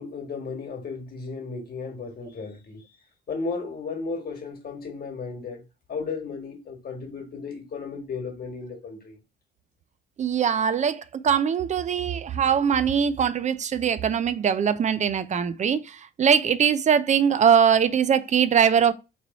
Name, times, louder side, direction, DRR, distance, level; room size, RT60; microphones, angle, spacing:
voice 1, 0.0-2.8 3.3-5.6 5.9-9.2, left 4 dB, 50° left, 1.5 m, -34 dB
voice 2, 10.2-18.9, right 7 dB, 35° right, 0.4 m, -22 dB
3.1 x 2.6 x 4.0 m
cardioid pair, 90°, 20 cm